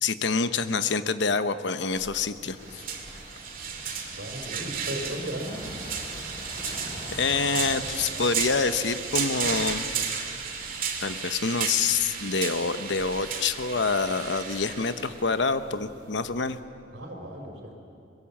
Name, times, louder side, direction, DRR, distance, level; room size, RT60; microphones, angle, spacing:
voice 1, 0.0-2.8 6.7-6.8 7.1-9.8 11.0-16.6, left 4 dB, 75° left, 11 dB, 0.9 m, -27 dB
sound 1, 1.9-16.6, right 6 dB, 50° right, 2.7 m, -34 dB
sound 2, 2.5-10.9, left 1 dB, 30° left, 4.8 m, -44 dB
voice 2, 4.1-5.6 16.9-17.7, equal, 75° right, 2 dB, 4.5 m, -36 dB
24.5 x 22.5 x 7.2 m, 2.7 s
head